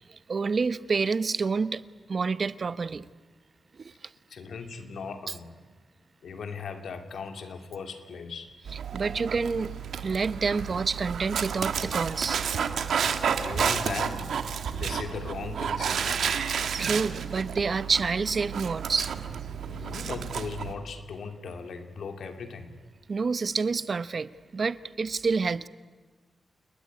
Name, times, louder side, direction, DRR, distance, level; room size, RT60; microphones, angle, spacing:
voice 1, 0.3-1.8 2.1-3.0 8.9-9.8 10.0-12.4 16.8-19.1 19.8-19.9 23.1-25.7, right 4 dB, 45° right, 14 dB, 0.9 m, -28 dB
voice 2, 4.3-5.5 6.2-8.5 13.4-14.3 14.7-16.5 19.6-22.7, left 5 dB, 80° left, 6 dB, 2.7 m, -38 dB
Dog, 8.7-20.7, right 7 dB, 90° right, 1.6 m, -31 dB
29.0 x 20.0 x 9.8 m, 1.4 s
wide cardioid pair, 110°, 0 cm